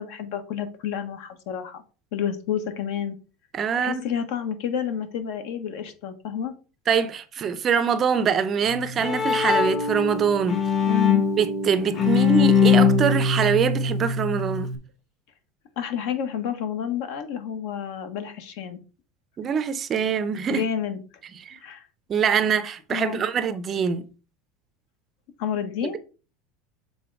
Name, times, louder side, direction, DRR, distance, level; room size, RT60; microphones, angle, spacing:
voice 1, 0.0-1.8 2.1-3.1 3.8-6.5 10.9-11.3 15.8-18.8 20.5-21.0 21.5-21.9 22.9-23.2 25.4-26.0, left 8 dB, 65° left, 1.3 m, -30 dB
voice 2, 3.5-4.0 6.9-10.6 11.4-14.7 19.4-20.6 21.5-21.6 22.1-24.0, right 6 dB, 25° right, 0.5 m, -24 dB
Bowed string instrument, 8.7-14.8, left 5 dB, 30° left, 1.1 m, -22 dB
6.9 x 3.8 x 4.7 m
supercardioid pair, 165°, 0 cm